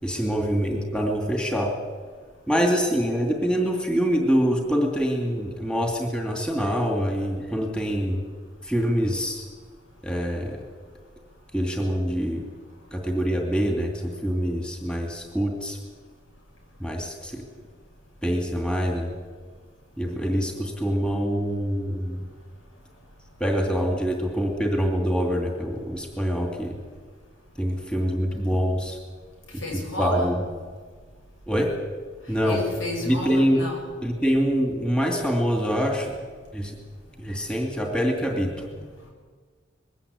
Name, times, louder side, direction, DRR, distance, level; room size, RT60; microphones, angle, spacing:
voice 1, 0.0-1.7 2.5-8.2 8.6-9.5 10.0-10.6 11.5-12.4 12.9-15.8 16.8-17.4 18.2-19.1 20.0-22.2 23.4-26.8 27.6-29.0 30.0-30.4 31.5-31.7 32.3-32.6 33.0-33.6 34.0-36.1 36.5-36.7 37.2-38.6, equal, 5° left, 2 dB, 2.6 m, -25 dB
voice 2, 29.6-30.4 32.4-33.8, left 1 dB, 90° left, 1 dB, 7.2 m, -31 dB
21.0 x 16.5 x 8.7 m, 1.5 s
head